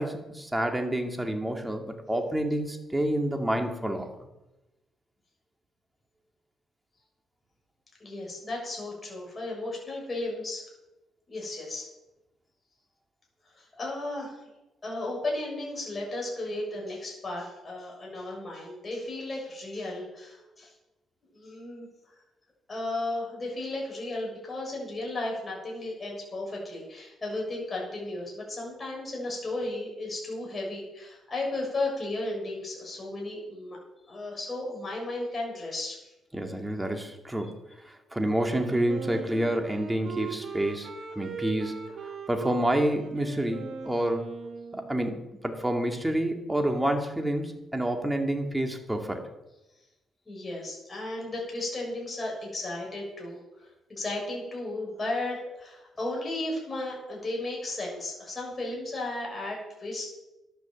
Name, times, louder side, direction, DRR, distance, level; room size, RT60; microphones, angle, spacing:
voice 1, 0.0-4.1 36.3-37.6 37.8-41.9 42.3-44.3 44.7-49.3, right 1 dB, 10° right, 3 dB, 2.4 m, -28 dB
voice 2, 8.0-10.6 11.3-11.9 13.5-14.4 14.8-20.7 21.3-21.9 22.7-33.8 34.1-36.0 50.3-60.1, left 2 dB, 30° left, -2 dB, 7.0 m, -34 dB
Wind instrument woodwind instrument, 38.5-45.1, right 6 dB, 60° right, 3.1 m, -40 dB
12.0 x 10.5 x 7.5 m, 0.97 s
cardioid pair, 90°, 0 cm